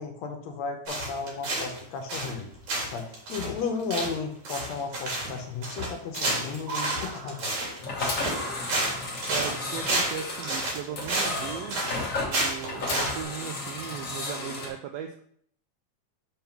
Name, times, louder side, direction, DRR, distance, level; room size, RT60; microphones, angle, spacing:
voice 1, 0.0-2.5 2.9-7.5, left 5 dB, 75° left, 5 dB, 1.8 m, -34 dB
sound 1, 0.9-1.8 2.1-2.4 2.7-13.2, right 2 dB, 70° right, 3.0 m, -30 dB
sound 2, 2.5-2.9 4.5-4.6 5.8-6.3 6.6-7.8 8.3-9.3 10.3-10.4, right 4 dB, 35° right, 1.5 m, -40 dB
sound 3, 7.8-14.7, left 2 dB, 45° left, 1.0 m, -33 dB
voice 2, 9.3-11.8 12.2-15.2, right 9 dB, 85° right, 6 dB, 1.4 m, -38 dB
5.5 x 3.6 x 5.8 m, 0.63 s
omnidirectional pair, 3.4 m